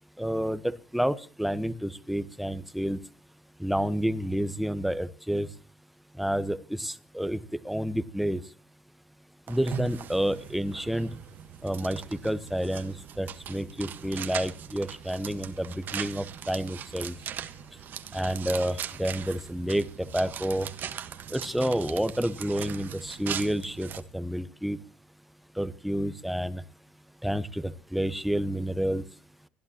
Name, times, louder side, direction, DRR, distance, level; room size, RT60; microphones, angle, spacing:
voice 1, 0.2-3.0 3.6-5.6 6.1-8.5 9.5-11.2 11.6-17.2 17.7-17.8 18.1-20.7 21.3-24.8 25.5-26.6 27.2-29.0, equal, ahead, 14 dB, 1.1 m, -29 dB
sound 1, 9.5-24.0, right 9 dB, 55° right, 1.4 m, -40 dB
30.0 x 11.0 x 2.9 m, 0.36 s
hypercardioid pair, 70°, 4 cm